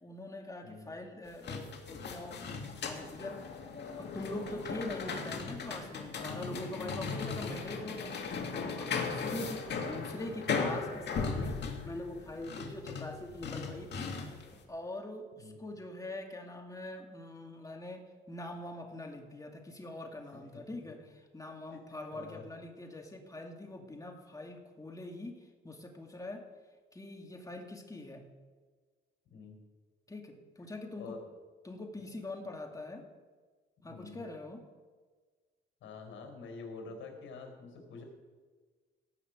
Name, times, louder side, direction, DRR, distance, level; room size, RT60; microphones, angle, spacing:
voice 1, 0.0-3.5 4.0-14.1 14.5-26.5 26.9-28.3 30.1-31.2 31.6-33.1 33.8-34.6, left 1 dB, 15° left, 2 dB, 2.3 m, -43 dB
sound 1, 1.3-14.5, left 5 dB, 60° left, 2.2 m, -37 dB
voice 2, 6.1-6.6 7.0-7.5 9.0-9.5 15.4-15.6 21.7-21.8 22.1-22.4 29.3-29.6 31.0-31.2 32.1-32.2 33.8-34.2 35.8-38.0, left 4 dB, 80° left, 3 dB, 4.4 m, -47 dB
17.5 x 6.3 x 8.2 m, 1.4 s
cardioid pair, 90°, 20 cm